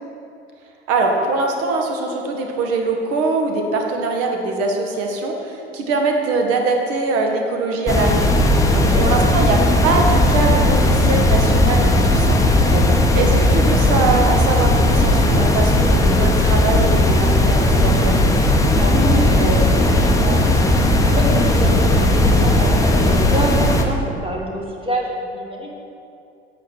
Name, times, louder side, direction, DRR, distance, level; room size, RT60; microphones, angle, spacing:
voice 1, 0.9-8.7 9.0-12.4 13.1-18.2, right 3 dB, 45° right, 2 dB, 1.4 m, -22 dB
sound 1, 7.9-23.8, left 1 dB, 10° left, 0.9 m, -16 dB
voice 2, 8.7-9.3 12.6-13.0 18.8-20.6 21.1-25.7, right 1 dB, 15° right, -1 dB, 1.6 m, -26 dB
8.6 x 8.2 x 4.7 m, 2.6 s
figure-of-eight pair, 70°, 32 cm